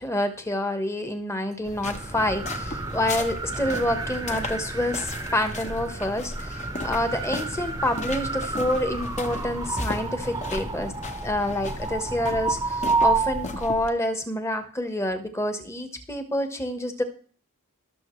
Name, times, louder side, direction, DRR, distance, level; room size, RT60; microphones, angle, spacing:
voice 1, 0.0-10.9 11.2-17.0, left 1 dB, 15° left, 7 dB, 1.3 m, -28 dB
sound 1, 1.6-13.9, left 2 dB, 30° left, 1.1 m, -37 dB
sound 2, 1.7-13.8, right 3 dB, 15° right, 0.9 m, -31 dB
18.5 x 6.8 x 3.2 m, 0.42 s
head